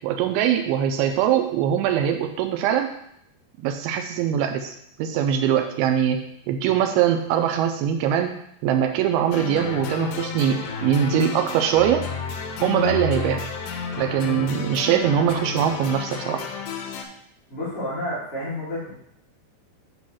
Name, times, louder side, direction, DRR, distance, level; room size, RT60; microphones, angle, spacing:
voice 1, 0.0-2.9 3.6-4.7 5.0-6.2 6.5-8.3 8.6-12.0 12.6-13.4 14.0-16.4, right 9 dB, 90° right, 5 dB, 2.2 m, -22 dB
sound 1, 9.3-17.1, left 5 dB, 85° left, 2.8 m, -31 dB
voice 2, 17.5-18.9, left 1 dB, 40° left, -8 dB, 2.5 m, -30 dB
8.2 x 3.1 x 6.3 m, 0.70 s
omnidirectional pair, 5.0 m